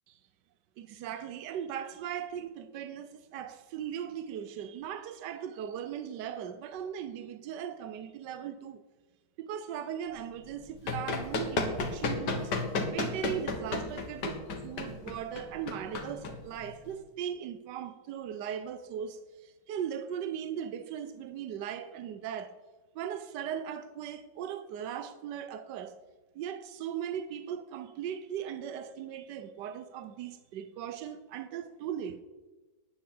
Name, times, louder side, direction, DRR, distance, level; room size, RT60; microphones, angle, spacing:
voice 1, 0.8-8.8 9.4-12.5 12.9-22.6 22.9-26.0 26.3-32.2, right 9 dB, 85° right, 1.3 m, -38 dB
Run, 10.5-16.9, left 3 dB, 80° left, 2.1 m, -33 dB
10.0 x 9.6 x 8.7 m
omnidirectional pair, 1.8 m